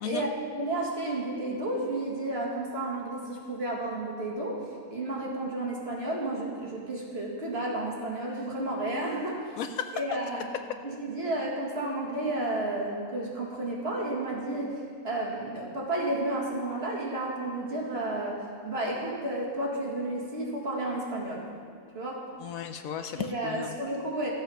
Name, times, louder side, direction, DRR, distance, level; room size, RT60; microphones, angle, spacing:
voice 1, 0.0-9.6 9.9-10.5 10.8-21.5 21.9-22.3 23.1-24.3, right 2 dB, 45° right, -4 dB, 2.2 m, -32 dB
voice 2, 9.6-10.0 22.4-23.7, left 8 dB, 75° left, 8 dB, 1.0 m, -34 dB
14.0 x 7.7 x 5.5 m, 2.2 s
omnidirectional pair, 1.6 m